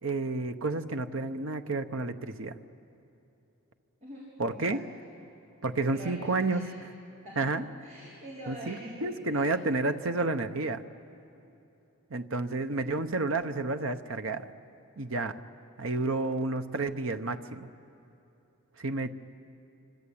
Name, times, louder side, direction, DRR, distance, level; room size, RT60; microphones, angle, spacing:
voice 1, 0.0-2.6 4.4-4.8 5.6-6.6 7.4-7.7 8.5-10.8 12.1-14.5 15.0-15.4 15.8-17.7 18.8-19.1, right 3 dB, 65° right, 8 dB, 1.0 m, -30 dB
voice 2, 4.0-5.0 5.8-6.8 7.2-7.5 7.8-9.5, right 1 dB, 40° right, -6 dB, 4.1 m, -45 dB
27.0 x 25.5 x 8.7 m, 2.9 s
head